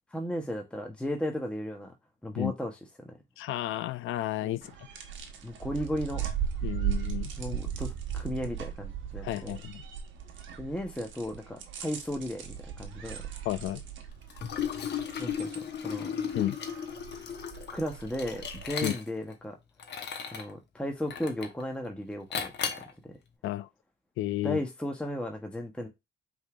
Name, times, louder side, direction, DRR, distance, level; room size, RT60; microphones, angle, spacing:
voice 1, 0.1-1.9 2.2-2.7 5.4-6.3 7.4-9.6 10.6-13.2 15.2-16.1 17.7-19.5 20.3-22.5 24.4-25.9, left 1 dB, 5° left, 0.9 m, -35 dB
voice 2, 3.4-4.7 6.6-7.3 9.2-9.8 13.5-13.8 16.3-16.6 18.8-18.9 23.4-23.7 24.2-24.6, left 15 dB, 80° left, 0.4 m, -32 dB
sound 1, 4.6-18.8, right 9 dB, 75° right, 1.1 m, -38 dB
Liquid, 14.3-19.3 19.8-20.5 21.1-21.6 22.3-22.9, left 7 dB, 60° left, 1.0 m, -35 dB
5.3 x 3.5 x 2.4 m
cardioid pair, 90°, 20 cm